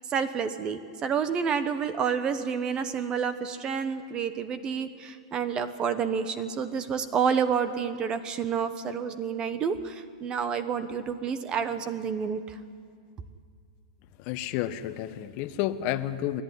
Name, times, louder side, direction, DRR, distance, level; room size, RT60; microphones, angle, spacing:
voice 1, 0.1-12.6, right 6 dB, 25° right, 12 dB, 1.1 m, -29 dB
voice 2, 14.3-16.4, left 12 dB, 45° left, 12 dB, 1.1 m, -30 dB
29.0 x 11.5 x 10.0 m, 2.1 s
hypercardioid pair, 130°, 3 cm